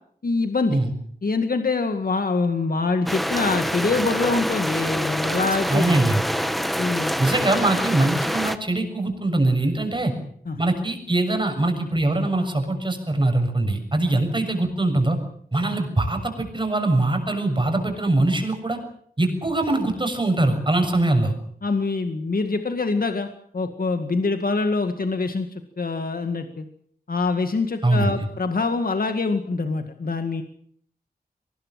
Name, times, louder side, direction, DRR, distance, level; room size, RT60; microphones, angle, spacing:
voice 1, 0.2-0.8 1.2-5.9 6.8-7.1 10.5-10.6 21.6-23.3 23.5-26.7 27.1-30.4, left 3 dB, 65° left, 7 dB, 2.0 m, -24 dB
sound 1, 3.1-8.6, equal, ahead, 1.6 m, -26 dB
voice 2, 5.7-6.2 7.2-10.1 10.6-15.2 15.5-18.8 19.2-21.3 27.8-28.3, right 2 dB, 30° right, 6 dB, 6.8 m, -22 dB
23.5 x 20.0 x 7.6 m, 0.62 s
wide cardioid pair, 85°, 16 cm